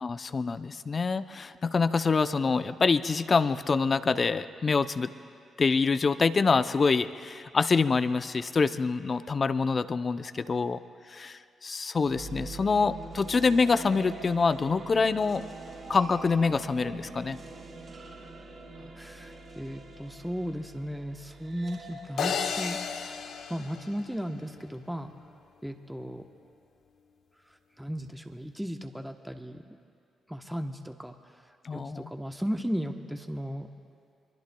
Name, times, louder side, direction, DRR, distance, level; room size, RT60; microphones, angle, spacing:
voice 1, 0.0-5.1 5.6-10.8 11.1-15.4 15.9-17.4 31.6-32.1, left 4 dB, 45° left, 12 dB, 0.6 m, -26 dB
sound 1, 12.0-24.2, right 3 dB, 55° right, 4.5 m, -45 dB
sound 2, 13.6-20.6 21.0-21.4, right 3 dB, 85° right, 4.9 m, -51 dB
voice 2, 18.7-25.1 25.6-26.2 27.4-29.7 30.3-33.7, equal, 5° right, 5 dB, 1.0 m, -36 dB
sound 3, 22.2-24.5, left 6 dB, 70° left, 0.9 m, -33 dB
23.5 x 23.0 x 2.3 m, 2.3 s
hypercardioid pair, 45°, 0 cm